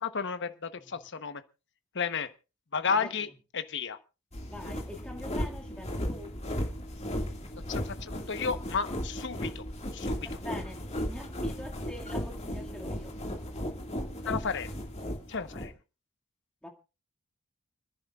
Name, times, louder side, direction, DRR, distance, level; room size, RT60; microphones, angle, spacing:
voice 1, 0.0-1.4 1.9-2.3 2.7-3.3 3.5-4.0 7.7-9.6 9.9-10.3 14.2-14.8 15.3-15.7, left 5 dB, 55° left, 10 dB, 1.1 m, -32 dB
voice 2, 0.8-1.1 2.8-3.3 4.4-6.3 10.1-13.2 16.6-16.7, left 1 dB, 5° left, 0 dB, 2.1 m, -44 dB
sound 1, 4.3-15.7, equal, 30° left, 2.1 m, -36 dB
29.5 x 10.5 x 2.4 m, 0.32 s
head